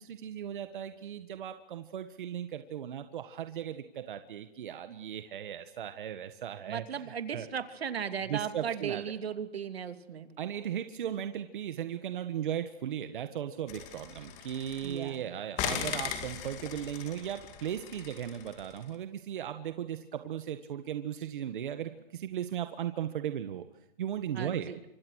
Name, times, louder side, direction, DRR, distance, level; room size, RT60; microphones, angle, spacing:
voice 1, 0.0-7.5 8.3-9.0 10.4-23.6 24.0-24.7, right 10 dB, 55° right, 9 dB, 1.6 m, -37 dB
voice 2, 6.7-10.4 14.8-15.2 24.3-24.8, right 8 dB, 85° right, 10 dB, 2.6 m, -36 dB
sound 1, 13.7-15.1 15.6-18.8, left 8 dB, 20° left, 2.4 m, -39 dB
26.0 x 25.5 x 6.4 m, 0.90 s
hypercardioid pair, 165°, 30 cm